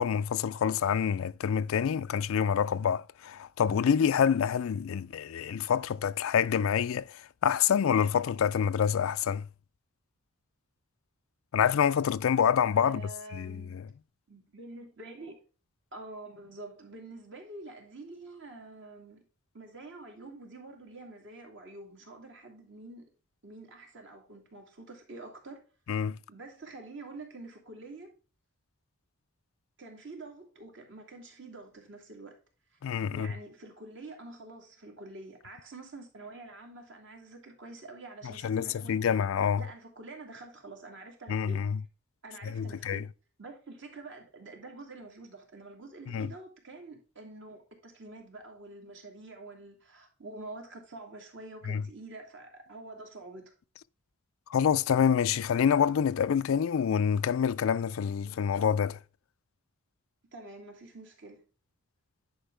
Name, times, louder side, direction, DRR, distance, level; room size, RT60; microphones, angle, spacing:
voice 1, 0.0-9.5 11.5-13.9 25.9-26.2 32.8-33.3 38.2-39.6 41.3-41.8 42.4-43.1 46.1-46.3 51.7-51.8 54.5-59.0, left 7 dB, 70° left, 0.4 m, -27 dB
voice 2, 12.8-13.8 14.3-15.4 15.9-19.2 19.5-23.1 23.4-25.6 26.3-28.1 29.8-32.4 32.7-32.8 33.1-39.1 39.6-41.7 42.2-43.1 43.4-53.5 60.3-61.4, right 2 dB, 55° right, 2.4 m, -47 dB
10.0 x 5.0 x 3.2 m
head